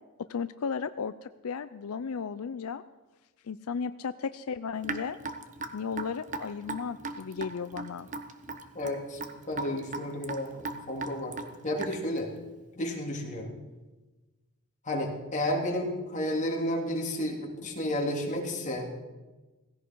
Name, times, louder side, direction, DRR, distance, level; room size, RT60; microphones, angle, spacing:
voice 1, 0.3-2.8 3.5-5.2 5.7-8.1, left 6 dB, 80° left, 12 dB, 0.5 m, -35 dB
Raindrop / Drip, 4.8-12.2, right 3 dB, 35° right, 1.1 m, -37 dB
voice 2, 8.7-9.2 9.5-10.6 10.9-11.3 11.6-12.3 12.7-13.5 14.8-18.9, left 1 dB, 35° left, -1 dB, 3.2 m, -31 dB
17.0 x 16.0 x 4.7 m, 1.2 s
head